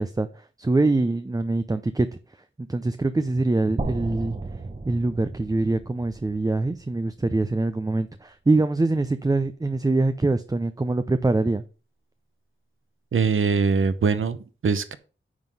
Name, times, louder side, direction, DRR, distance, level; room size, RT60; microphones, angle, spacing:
voice 1, 0.0-2.1 2.6-4.3 4.9-11.6, right 2 dB, 20° right, 10 dB, 0.5 m, -24 dB
sound 1, 3.8-7.8, right 3 dB, 35° right, 0.9 m, -35 dB
voice 2, 13.1-15.0, right 5 dB, 85° right, 12 dB, 0.8 m, -22 dB
9.6 x 3.8 x 5.4 m, 0.35 s
wide cardioid pair, 75°, 20 cm